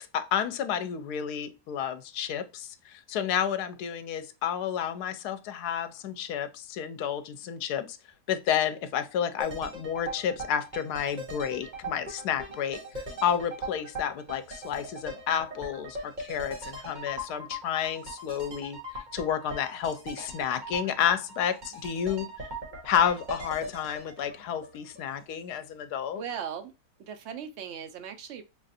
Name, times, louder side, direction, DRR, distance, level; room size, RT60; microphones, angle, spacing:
voice 1, 0.1-8.0 8.3-18.8 19.1-22.3 22.8-26.2, left 9 dB, 80° left, 1.1 m, -30 dB
sound 1, 9.4-25.3 25.6-25.7, right 1 dB, 35° right, 1.0 m, -40 dB
voice 2, 26.2-26.7 27.1-28.4, right 8 dB, 70° right, 0.6 m, -38 dB
5.2 x 2.5 x 2.6 m
omnidirectional pair, 1.7 m